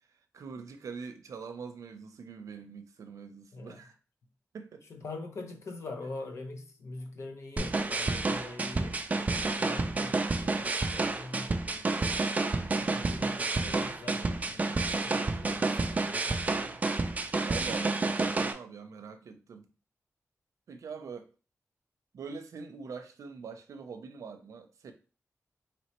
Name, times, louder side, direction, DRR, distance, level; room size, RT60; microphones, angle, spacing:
voice 1, 0.3-4.0 4.5-4.9 12.6-13.1 17.4-19.6 20.7-21.3 22.1-24.9, right 5 dB, 90° right, 0.5 m, -44 dB
voice 2, 4.9-11.9 12.7-16.8, left 2 dB, 65° left, 0.8 m, -44 dB
sound 1, 7.6-18.5, right 3 dB, 30° right, 0.4 m, -30 dB
4.2 x 3.1 x 2.9 m
wide cardioid pair, 155°, 5 cm